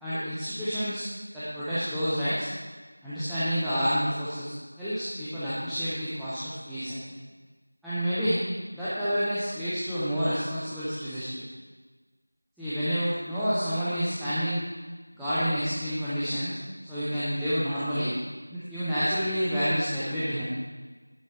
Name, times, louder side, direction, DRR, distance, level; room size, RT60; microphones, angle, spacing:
voice 1, 0.0-1.1 1.3-2.5 3.0-7.2 7.8-8.4 8.7-11.5 12.6-14.6 15.1-18.1 18.5-20.4, equal, ahead, -18 dB, 0.5 m, -29 dB
10.5 x 6.2 x 4.5 m, 1.3 s
figure-of-eight pair, 175°, 0 cm